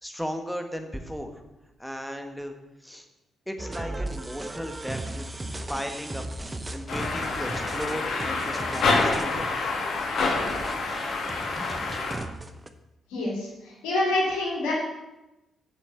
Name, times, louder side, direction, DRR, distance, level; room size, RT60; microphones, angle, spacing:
voice 1, 0.0-1.4 1.8-2.5 2.8-3.1 3.5-5.3 5.7-6.2 6.7-9.5, equal, ahead, 5 dB, 1.5 m, -35 dB
sound 1, 3.6-12.7, right 2 dB, 25° right, 0.8 m, -37 dB
sound 2, 6.9-12.2, left 3 dB, 60° left, 1.7 m, -27 dB
voice 2, 13.1-14.7, left 2 dB, 75° left, -5 dB, 2.8 m, -27 dB
7.3 x 6.9 x 5.8 m, 0.97 s
hypercardioid pair, 40°, 0 cm